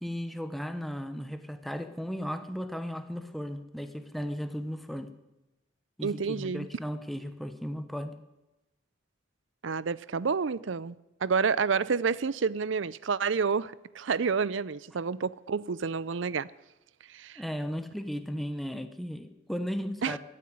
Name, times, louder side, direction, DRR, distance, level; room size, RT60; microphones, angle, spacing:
voice 1, 0.0-5.1 6.0-8.2 17.4-20.2, equal, ahead, 1.0 m, -35 dB
voice 2, 6.0-6.7 9.6-11.0 11.2-16.5 17.1-17.4 20.0-20.2, right 5 dB, 70° right, 0.5 m, -29 dB
15.0 x 10.0 x 9.3 m
head